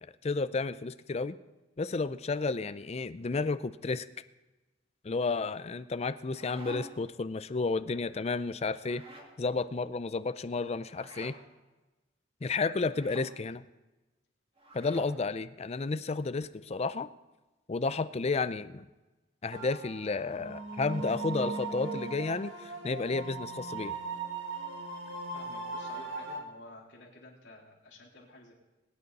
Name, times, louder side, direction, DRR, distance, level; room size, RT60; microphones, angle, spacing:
voice 1, 0.2-1.4 1.8-4.1 5.0-9.0 9.4-11.3 12.4-13.6 14.7-17.1 17.7-18.9 19.4-23.9, left 3 dB, 35° left, 13 dB, 0.4 m, -32 dB
sound 1, 6.1-7.1 8.8-9.3 10.9-11.4 12.9-13.3 14.6-15.2, right 1 dB, 30° right, 2.4 m, -48 dB
sound 2, 19.5-26.4, right 3 dB, 75° right, 2.3 m, -38 dB
voice 2, 25.3-28.5, left 1 dB, 65° left, -4 dB, 3.7 m, -52 dB
21.5 x 9.3 x 4.1 m, 1.1 s
head